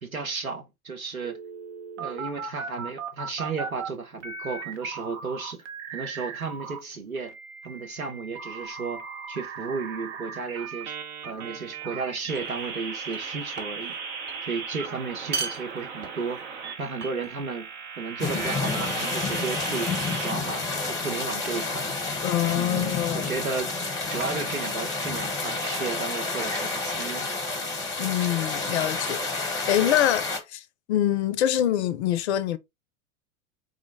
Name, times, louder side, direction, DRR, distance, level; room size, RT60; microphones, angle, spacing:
voice 1, 0.0-1.4 2.0-5.6 5.9-7.3 7.6-9.0 9.3-11.0 11.2-14.0 14.4-16.4 16.8-17.7 17.9-19.9 20.2-21.9 22.6-23.7 24.1-27.3, right 4 dB, 90° right, 0.8 m, -33 dB
sound 1, 1.2-3.9 4.2-6.8 7.1-20.3, right 5 dB, 60° right, 0.8 m, -37 dB
sound 2, 11.2-11.5 12.3-12.8 13.1-14.0 14.3-14.5 15.1-16.5 17.0-17.6 18.4-18.9 19.8-20.2 20.8-21.2 22.4-22.6 23.5-25.3, right 5 dB, 25° right, 0.7 m, -39 dB
sound 3, 18.2-30.4, left 3 dB, 10° left, 1.0 m, -30 dB
voice 2, 22.2-23.3 28.0-32.6, left 12 dB, 55° left, 0.4 m, -25 dB
3.8 x 2.0 x 3.3 m
figure-of-eight pair, 85°, 41 cm